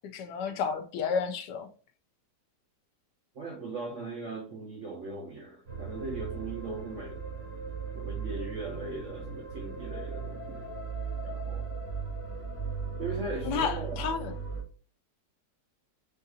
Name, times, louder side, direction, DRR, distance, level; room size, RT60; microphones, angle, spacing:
voice 1, 0.1-1.7 13.4-14.3, left 6 dB, 75° left, 1.1 m, -31 dB
voice 2, 3.3-7.2 8.0-10.7 11.2-11.7 13.0-14.1, right 3 dB, 65° right, 0.8 m, -39 dB
sound 1, 5.7-14.6, right 5 dB, 90° right, 3.1 m, -37 dB
6.4 x 2.4 x 2.7 m
omnidirectional pair, 1.9 m